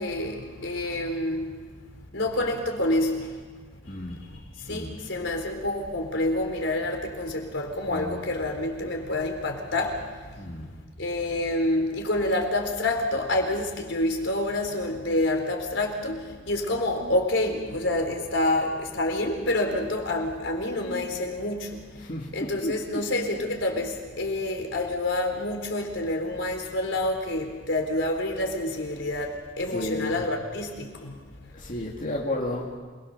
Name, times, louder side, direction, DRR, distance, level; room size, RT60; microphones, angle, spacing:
voice 1, 0.0-1.6 2.1-3.4 3.8-10.5 11.0-31.2 31.4-31.5, left 1 dB, 75° left, 3 dB, 4.2 m, -28 dB
voice 2, 3.9-4.2 4.7-4.9 7.9-8.2 10.3-10.7 22.0-23.1 29.6-30.2 31.5-32.7, left 1 dB, 45° left, -2 dB, 2.4 m, -33 dB
28.0 x 21.5 x 6.9 m, 1.5 s
head